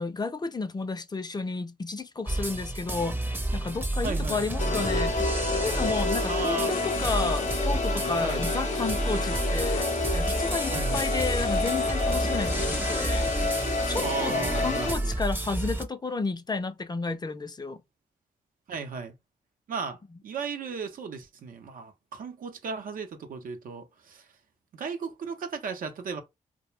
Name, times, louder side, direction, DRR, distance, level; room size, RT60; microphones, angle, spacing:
voice 1, 0.0-5.2 5.5-13.6 13.9-17.8, left 3 dB, 30° left, 0.5 m, -32 dB
sound 1, 2.3-15.8, right 1 dB, 15° right, 0.6 m, -30 dB
voice 2, 3.9-4.4 6.3-6.8 8.2-8.4 10.7-11.1 14.0-15.2 18.7-19.1 19.7-24.3 24.7-26.2, right 5 dB, 75° right, 0.7 m, -35 dB
sound 2, 4.6-14.9, left 3 dB, 55° left, 0.8 m, -29 dB
sound 3, 6.7-14.2, left 8 dB, 90° left, 0.4 m, -42 dB
2.3 x 2.1 x 3.1 m
supercardioid pair, 50°, 14 cm